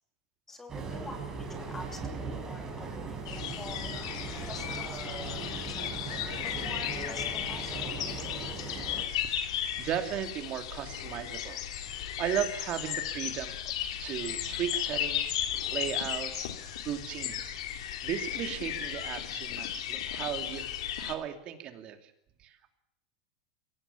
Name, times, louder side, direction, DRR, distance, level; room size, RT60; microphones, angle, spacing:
voice 1, 0.5-3.9 4.5-5.0 5.7-5.9 6.4-8.0, left 2 dB, 10° left, 5 dB, 3.0 m, -47 dB
sound 1, 0.7-9.0, right 4 dB, 20° right, 6.1 m, -39 dB
sound 2, 3.2-21.1, left 10 dB, 75° left, 3.1 m, -35 dB
voice 2, 9.2-13.7 14.0-17.6 18.0-20.7 21.0-22.1 22.4-22.8, right 10 dB, 35° right, 7 dB, 2.8 m, -36 dB
23.5 x 17.5 x 8.5 m, 0.81 s
supercardioid pair, 150°, 3 cm